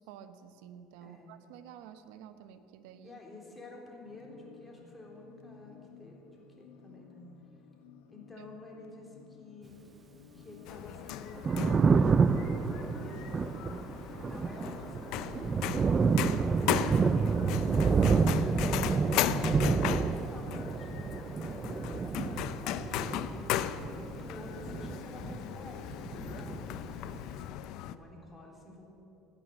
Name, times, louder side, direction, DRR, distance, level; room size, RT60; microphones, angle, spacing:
voice 1, 0.0-3.2 8.4-8.5, right 9 dB, 75° right, 9 dB, 1.1 m, -50 dB
voice 2, 3.0-7.3 8.1-9.8 10.3-18.7 19.3-28.8, left 2 dB, 15° left, -1 dB, 3.6 m, -50 dB
sound 1, 4.0-23.4, left 6 dB, 85° left, 1.3 m, -56 dB
sound 2, 10.7-28.0, left 12 dB, 65° left, 0.6 m, -37 dB
Thunder, 11.2-25.7 25.9-27.2, right 5 dB, 25° right, 0.4 m, -29 dB
16.5 x 11.0 x 7.6 m, 2.9 s
supercardioid pair, 120°, 0 cm